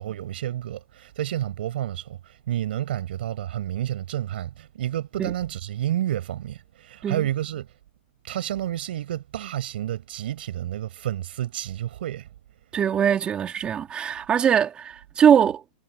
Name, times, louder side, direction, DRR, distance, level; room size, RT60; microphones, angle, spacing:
voice 1, 0.0-7.7 8.2-12.3, right 12 dB, 65° right, 4.9 m, -30 dB
voice 2, 12.7-15.6, right 8 dB, 15° right, 2.7 m, -21 dB
hypercardioid pair, 155°, 6 cm